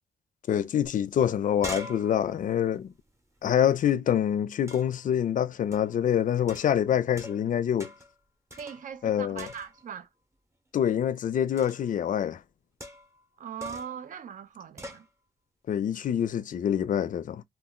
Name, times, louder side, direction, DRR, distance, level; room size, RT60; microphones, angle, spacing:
voice 1, 0.5-2.9 3.4-7.9 9.0-9.5 10.7-12.4 15.7-17.4, left 9 dB, 55° left, 0.4 m, -26 dB
sound 1, 0.8-0.9 1.2-3.9 4.7-5.1 5.7-6.0 6.5-7.5 7.8-8.2 8.5-9.1 9.4-10.0 11.6-11.9 12.8-13.2 13.6-14.0 14.8-15.1, equal, 15° right, 0.8 m, -43 dB
voice 2, 8.6-10.1 13.4-15.1, right 7 dB, 55° right, 0.5 m, -40 dB
2.2 x 2.1 x 3.6 m
cardioid pair, 95°, 16 cm